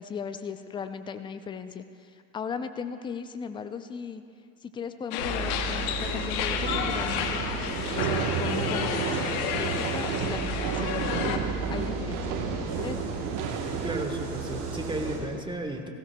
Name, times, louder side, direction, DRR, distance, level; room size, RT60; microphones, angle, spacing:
voice 1, 0.0-4.2 4.6-7.4 7.6-11.4 11.7-12.4 12.8-13.1, left 6 dB, 10° left, 10 dB, 0.3 m, -37 dB
sound 1, 5.1-11.4, left 8 dB, 50° left, 1.0 m, -32 dB
sound 2, 5.2-15.2, right 3 dB, 70° right, 3.2 m, -34 dB
sound 3, 6.5-14.0, right 7 dB, 40° right, 1.2 m, -32 dB
voice 2, 13.8-15.9, right 1 dB, 10° right, 4 dB, 1.3 m, -34 dB
18.0 x 16.0 x 2.3 m, 2.3 s
hypercardioid pair, 85°, 50 cm